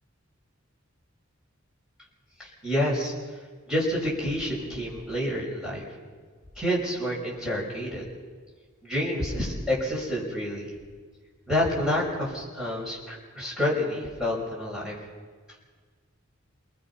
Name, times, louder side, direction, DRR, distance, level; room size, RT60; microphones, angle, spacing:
voice 1, 2.4-3.1 3.7-5.8 6.6-8.0 8.8-10.7 11.5-15.0, left 1 dB, 5° right, -5 dB, 6.1 m, -28 dB
28.5 x 20.0 x 5.7 m, 1.5 s
head